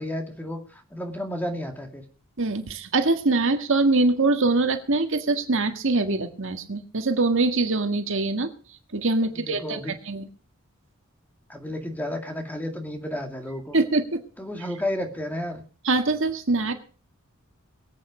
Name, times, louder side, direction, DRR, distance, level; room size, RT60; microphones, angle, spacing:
voice 1, 0.0-2.0 9.4-9.9 11.5-13.8 14.4-15.6, left 1 dB, 10° left, 4 dB, 2.1 m, -32 dB
voice 2, 2.4-8.5 8.9-10.2 13.7-14.2 15.8-16.7, right 3 dB, 60° right, 7 dB, 1.7 m, -23 dB
22.5 x 8.5 x 5.0 m, 0.39 s
head